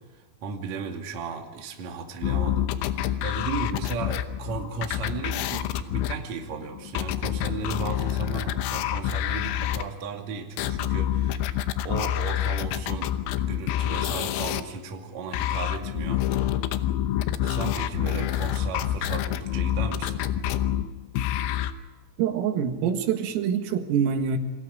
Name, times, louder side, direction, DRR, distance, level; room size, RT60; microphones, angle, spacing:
voice 1, 0.4-16.6 17.4-20.3, right 4 dB, 45° right, 2 dB, 2.8 m, -35 dB
sound 1, 2.2-9.8 10.6-14.6 15.3-21.7, left 11 dB, 85° left, 3.5 m, -27 dB
voice 2, 22.2-24.4, right 7 dB, 85° right, 5 dB, 4.4 m, -25 dB
29.0 x 23.5 x 5.1 m, 1.3 s
omnidirectional pair, 5.8 m